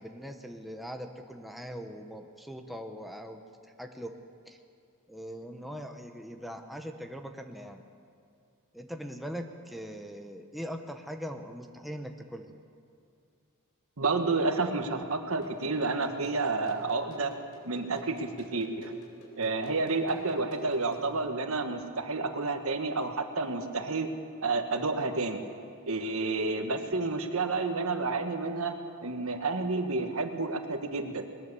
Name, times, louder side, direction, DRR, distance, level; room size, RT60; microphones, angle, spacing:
voice 1, 0.0-4.1 4.5-4.6 5.1-7.8 8.7-12.5, equal, ahead, 4 dB, 0.9 m, -41 dB
voice 2, 14.0-17.3 17.6-18.9 19.4-24.1 24.4-25.4 25.9-31.3, right 3 dB, 70° right, 6 dB, 1.5 m, -30 dB
sound 1, 15.4-21.1, equal, 85° left, 4.2 m, -50 dB
21.0 x 18.0 x 6.9 m, 2.5 s
head